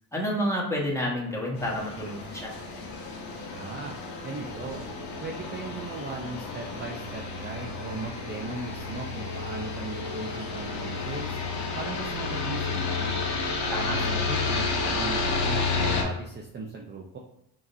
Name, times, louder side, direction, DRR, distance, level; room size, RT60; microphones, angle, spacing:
voice 1, 0.1-2.5 13.7-14.1, equal, 5° left, -3 dB, 1.5 m, -29 dB
sound 1, 1.6-16.0, left 4 dB, 75° left, 1.1 m, -31 dB
voice 2, 3.5-4.0 4.2-4.8 5.2-13.2 13.9-17.2, right 3 dB, 25° right, -1 dB, 0.6 m, -38 dB
4.8 x 2.9 x 2.7 m, 0.77 s
supercardioid pair, 70°, 41 cm